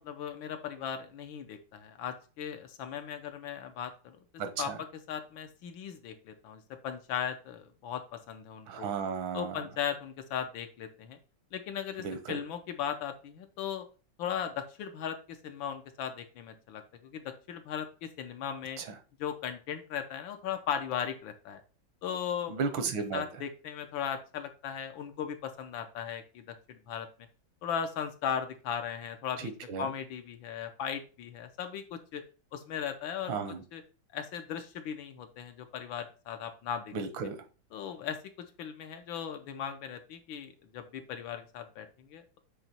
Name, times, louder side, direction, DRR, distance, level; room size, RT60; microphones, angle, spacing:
voice 1, 0.0-4.2 4.6-4.7 5.1-8.9 9.3-11.2 11.5-13.9 14.2-18.8 19.2-21.6 22.0-22.5 23.1-27.1 27.6-29.5 29.8-32.2 32.5-33.4 33.7-33.8 34.1-36.9 37.7-42.4, left 8 dB, 85° left, 7 dB, 1.6 m, -37 dB
voice 2, 4.4-4.8 8.7-9.6 12.0-12.4 18.8-18.9 22.5-23.2 29.4-29.9 33.3-33.6 36.9-37.4, right 5 dB, 85° right, 8 dB, 1.7 m, -34 dB
7.8 x 3.0 x 4.3 m, 0.36 s
omnidirectional pair, 2.1 m